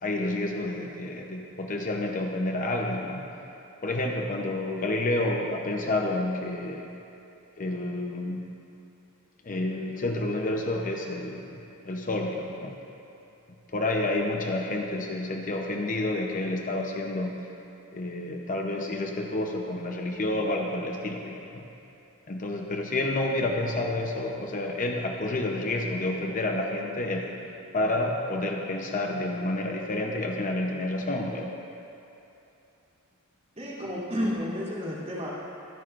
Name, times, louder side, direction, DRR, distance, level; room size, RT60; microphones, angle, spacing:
voice 1, 0.0-3.2 3.8-6.9 7.6-8.5 9.4-12.8 13.7-17.5 17.9-21.7 22.3-27.4 27.7-31.5, left 2 dB, 35° left, 1 dB, 0.8 m, -29 dB
voice 2, 33.6-35.3, equal, 30° right, -8 dB, 3.0 m, -31 dB
24.0 x 10.5 x 2.5 m, 2.8 s
head